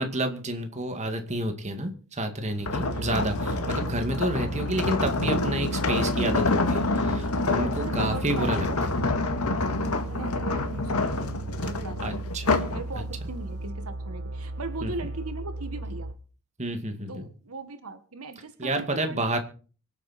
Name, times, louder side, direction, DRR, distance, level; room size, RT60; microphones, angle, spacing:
voice 1, 0.0-8.7 12.0-12.6 14.8-14.9 16.6-17.3 18.6-19.4, right 1 dB, 30° right, 6 dB, 2.2 m, -30 dB
sound 1, 2.6-12.8 13.3-13.5, left 2 dB, 85° left, 1.9 m, -27 dB
sound 2, 2.6-16.1, right 2 dB, 55° right, 1.4 m, -36 dB
voice 2, 7.8-8.8 9.2-9.5 10.0-11.4 11.6-12.0 12.7-16.1 17.1-19.2, right 3 dB, 80° right, 9 dB, 1.8 m, -39 dB
24.5 x 8.7 x 4.4 m, 0.39 s
head